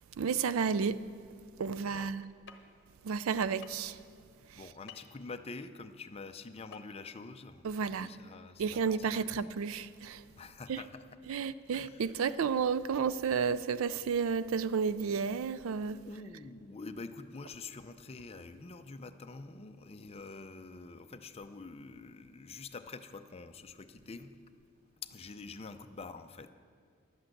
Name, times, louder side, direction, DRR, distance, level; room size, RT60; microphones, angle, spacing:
voice 1, 0.2-1.1 1.6-2.2 3.0-4.0 4.5-4.6 7.6-8.1 8.6-10.2 10.7-10.8 11.3-16.0, right 6 dB, 75° right, 0.4 m, -32 dB
voice 2, 1.8-2.1 4.5-7.6 8.0-9.5 10.4-11.4 11.7-12.3 16.0-24.5 25.0-26.5, left 3 dB, 30° left, 0.5 m, -47 dB
sound 1, 2.5-2.6 3.6-3.9 4.9-5.1 6.7-6.9 7.2-7.3, left 7 dB, 55° left, 0.9 m, -50 dB
11.0 x 8.4 x 7.8 m
head